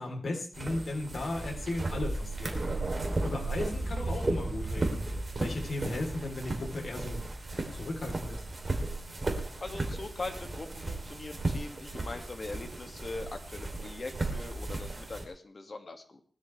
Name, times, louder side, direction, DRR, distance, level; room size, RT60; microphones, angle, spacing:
voice 1, 0.0-2.7 3.0-5.1 5.4-7.2 7.5-8.4, left 2 dB, 60° left, 1 dB, 3.5 m, -36 dB
sound 1, 0.5-15.2, right 2 dB, 35° right, 3.2 m, -35 dB
voice 2, 9.6-16.2, left 3 dB, 45° left, 5 dB, 2.1 m, -41 dB
20.0 x 13.0 x 3.3 m, 0.42 s
wide cardioid pair, 115°, 0 cm